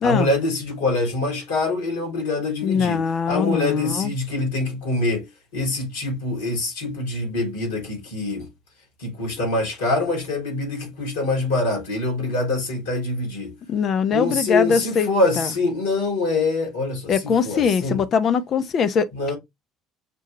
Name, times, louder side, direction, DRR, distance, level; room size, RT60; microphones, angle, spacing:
voice 1, 0.0-5.3 5.5-8.5 9.0-13.5 14.1-18.0 19.1-19.4, left 2 dB, 80° left, 1.7 m, -24 dB
voice 2, 2.6-4.1 13.7-15.1 15.4-15.5 17.1-19.1, left 6 dB, 50° left, 0.6 m, -21 dB
6.0 x 2.3 x 2.9 m
hypercardioid pair, 55°, 0 cm